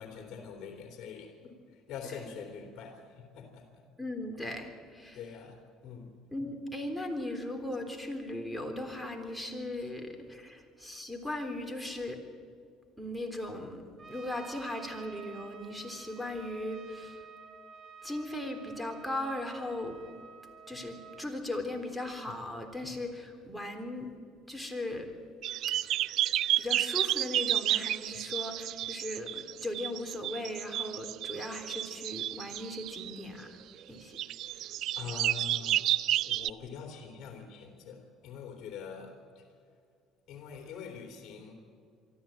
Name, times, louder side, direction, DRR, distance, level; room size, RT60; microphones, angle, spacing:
voice 1, 0.0-3.8 5.1-6.1 9.8-9.9 10.4-10.5 22.3-22.4 35.0-35.8 36.2-39.4 40.3-41.5, left 6 dB, 55° left, 3 dB, 3.2 m, -44 dB
voice 2, 4.0-5.2 6.3-12.2 13.0-17.2 18.0-20.0 20.7-24.1 24.5-25.1 26.6-33.6 33.9-34.2 34.5-34.7, left 1 dB, ahead, 3 dB, 3.5 m, -38 dB
Trumpet, 14.0-21.3, right 4 dB, 35° right, 2.1 m, -50 dB
Wrabness Sound Safari, 25.4-33.2 34.2-36.5, right 13 dB, 65° right, 0.4 m, -31 dB
24.0 x 13.5 x 8.9 m, 2.2 s
supercardioid pair, 95°, 0 cm